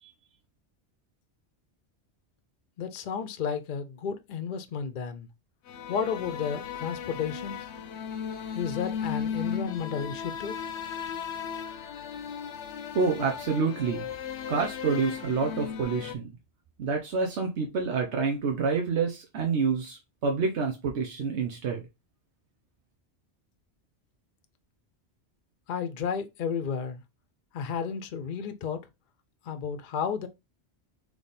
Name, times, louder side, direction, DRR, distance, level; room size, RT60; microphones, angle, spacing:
voice 1, 2.8-5.3 5.9-7.7 8.5-10.6 25.7-27.0 27.5-28.8 29.4-30.3, left 6 dB, 55° left, 0.6 m, -32 dB
sound 1, 5.7-16.1, left 7 dB, 85° left, 0.9 m, -36 dB
voice 2, 12.9-14.1 14.5-16.3 16.8-21.9, right 5 dB, 85° right, 1.1 m, -28 dB
3.5 x 3.2 x 4.0 m
omnidirectional pair, 1.1 m